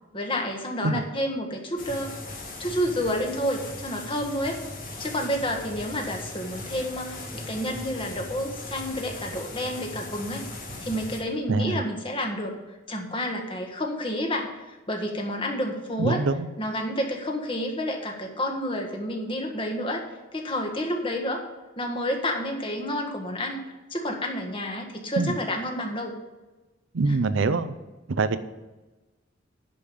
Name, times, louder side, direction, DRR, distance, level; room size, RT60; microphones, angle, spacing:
voice 1, 0.1-2.1 2.6-4.6 5.0-10.4 10.8-12.5 12.9-16.2 16.6-20.0 20.3-21.4 21.8-23.6 23.9-26.1, equal, 25° left, 2 dB, 1.7 m, -29 dB
sound 1, 1.8-11.2, left 2 dB, 45° left, 2.1 m, -39 dB
voice 2, 11.5-11.8 16.0-16.5 25.2-25.4 26.9-27.7 28.1-28.4, right 3 dB, 75° right, 11 dB, 0.6 m, -24 dB
10.5 x 5.3 x 8.5 m, 1.1 s
head